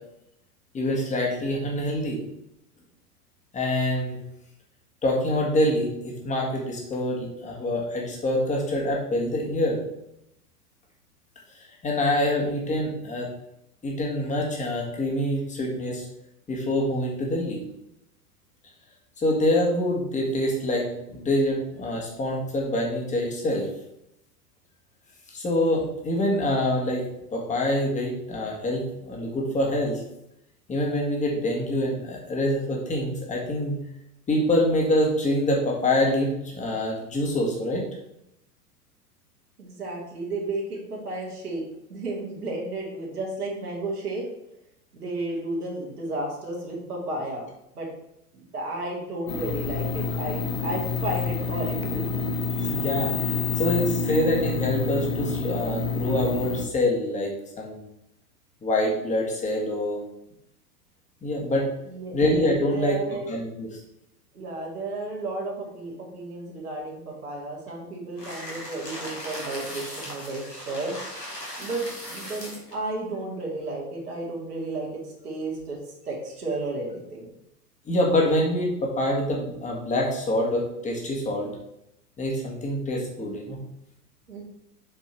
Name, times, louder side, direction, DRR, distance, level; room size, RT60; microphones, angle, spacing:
voice 1, 0.7-2.2 3.5-4.2 5.0-9.8 11.5-13.3 13.8-16.1 16.5-17.6 19.2-23.7 25.3-27.1 27.3-30.0 30.7-33.8 34.3-37.9 52.6-57.9 58.6-60.0 61.2-61.7 62.1-63.0 63.3-63.7 77.9-81.5 82.2-83.6, left 1 dB, 15° left, -1 dB, 1.9 m, -25 dB
voice 2, 39.6-41.6 41.9-44.2 44.9-47.5 47.7-47.9 48.3-52.1 61.9-62.2 62.7-63.3 64.3-71.0 71.6-77.3 84.3-84.4, right 2 dB, 70° right, -3 dB, 2.6 m, -33 dB
sound 1, 49.3-56.6, left 4 dB, 55° left, 1.4 m, -28 dB
sound 2, 68.2-72.7, equal, 85° left, 2.5 m, -38 dB
7.4 x 4.6 x 4.4 m, 0.82 s
figure-of-eight pair, 100°, 47 cm